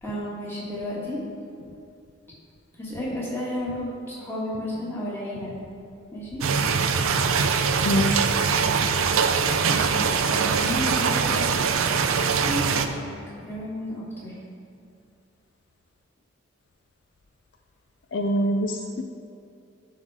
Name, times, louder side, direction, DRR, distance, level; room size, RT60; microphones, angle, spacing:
voice 1, 0.0-1.2 2.8-5.5 6.1-6.4 9.2-11.5 11.9-13.0 13.4-14.4, equal, 10° left, -7 dB, 1.8 m, -33 dB
sound 1, 6.4-12.9, right 5 dB, 85° right, 0.5 m, -22 dB
voice 2, 7.9-8.3 18.1-19.0, equal, 60° left, 4 dB, 0.4 m, -24 dB
11.0 x 3.8 x 4.9 m, 2.5 s
head